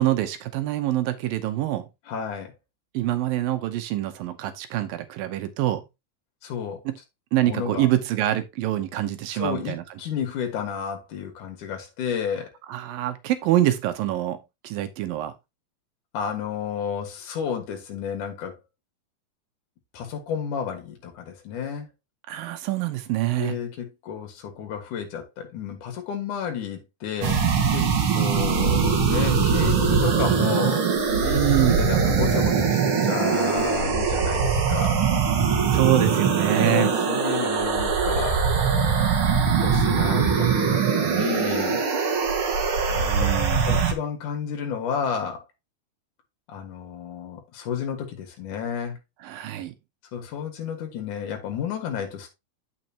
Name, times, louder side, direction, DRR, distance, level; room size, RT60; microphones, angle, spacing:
voice 1, 0.0-1.8 2.9-5.8 6.9-7.0 7.3-9.8 12.7-14.4 14.6-15.3 22.3-23.5 31.2-31.8 35.7-36.9 43.0-43.7 49.2-49.7, right 14 dB, 80° right, 2.6 m, -25 dB
voice 2, 2.1-2.5 6.4-6.8 7.4-7.9 9.3-12.5 16.1-18.5 19.9-21.9 23.4-27.4 27.7-31.2 31.6-35.1 36.6-38.5 39.5-41.9 42.9-43.4 43.7-45.4 46.5-49.0 50.1-52.3, left 7 dB, 65° left, 2.9 m, -31 dB
sound 1, 27.2-43.9, right 6 dB, 50° right, 1.9 m, -22 dB
9.2 x 6.3 x 2.8 m
omnidirectional pair, 4.1 m